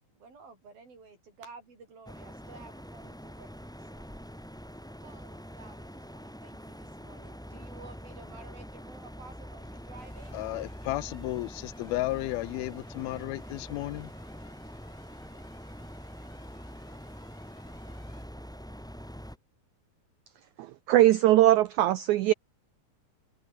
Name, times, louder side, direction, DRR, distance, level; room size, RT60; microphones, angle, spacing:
voice 1, 0.1-4.1 5.0-10.7, right 4 dB, 70° right, 9.8 m, -52 dB
sound 1, 2.1-19.4, equal, ahead, 3.9 m, -44 dB
sound 2, 10.0-18.2, left 2 dB, 30° left, 8.6 m, -61 dB
voice 2, 10.3-14.1, left 18 dB, 90° left, 2.6 m, -33 dB
voice 3, 20.9-22.3, right 14 dB, 85° right, 1.6 m, -20 dB
omnidirectional pair, 4.4 m